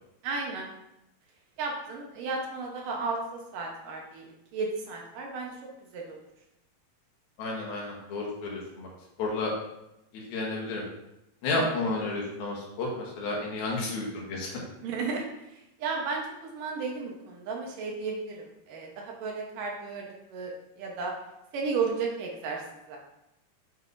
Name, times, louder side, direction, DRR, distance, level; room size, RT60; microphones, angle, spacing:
voice 1, 0.2-0.7 1.6-5.5 5.9-6.2 11.5-11.7 14.8-20.5 20.8-21.1 21.5-22.6 22.9-23.0, right 4 dB, 70° right, 0 dB, 2.5 m, -34 dB
voice 2, 7.4-8.9 9.2-9.5 10.1-10.8 11.4-14.6, left 2 dB, 80° left, -2 dB, 3.4 m, -31 dB
7.8 x 7.6 x 2.6 m, 0.87 s
omnidirectional pair, 4.3 m